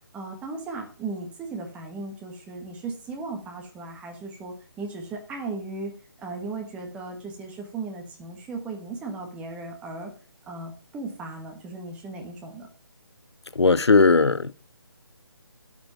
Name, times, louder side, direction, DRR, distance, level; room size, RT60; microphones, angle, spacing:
voice 1, 0.1-5.9 6.2-10.1 10.5-12.7, right 3 dB, 10° right, 1.3 m, -36 dB
voice 2, 13.5-14.5, left 4 dB, 80° left, 0.7 m, -18 dB
12.5 x 5.2 x 7.3 m
figure-of-eight pair, 150°, 14 cm